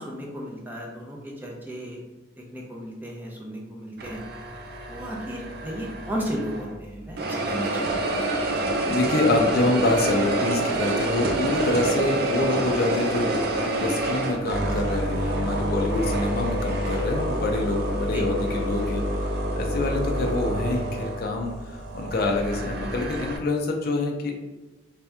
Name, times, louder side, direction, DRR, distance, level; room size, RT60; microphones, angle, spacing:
voice 1, 0.0-2.0 2.4-4.2 4.9-8.1 18.1-18.2, equal, 10° right, -2 dB, 0.6 m, -34 dB
sound 1, 4.0-6.8 7.2-23.4, right 1 dB, 55° right, 0.5 m, -27 dB
voice 2, 8.3-19.3 19.6-24.3, left 2 dB, 50° left, 1 dB, 0.4 m, -26 dB
3.3 x 2.8 x 3.4 m, 1.2 s
head